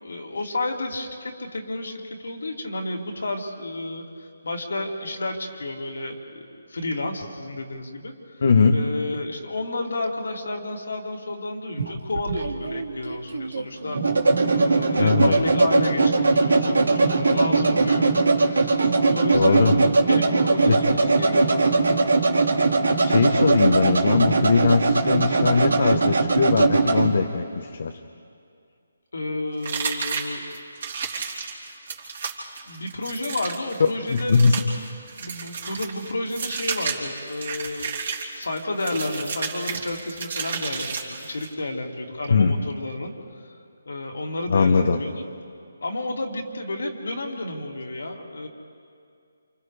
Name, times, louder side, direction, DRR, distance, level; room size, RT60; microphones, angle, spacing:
voice 1, 0.0-6.2 6.7-8.4 8.7-14.0 14.5-18.1 18.4-21.8 29.1-30.4 32.7-34.5 35.2-37.9 38.3-43.6 43.9-45.2 45.8-48.5, left 2 dB, 75° left, 0 dB, 3.0 m, -31 dB
voice 2, 8.4-8.8 15.0-15.3 19.3-19.8 20.7-20.8 23.0-27.9 34.1-34.6 42.3-42.5 44.5-45.0, left 4 dB, 60° left, 4 dB, 1.0 m, -20 dB
sound 1, 11.8-27.1, right 3 dB, 80° right, 2.1 m, -20 dB
sound 2, 29.6-41.5, right 5 dB, 55° right, 3.7 m, -32 dB
29.0 x 28.5 x 3.4 m, 2.4 s
hypercardioid pair, 155°, 0 cm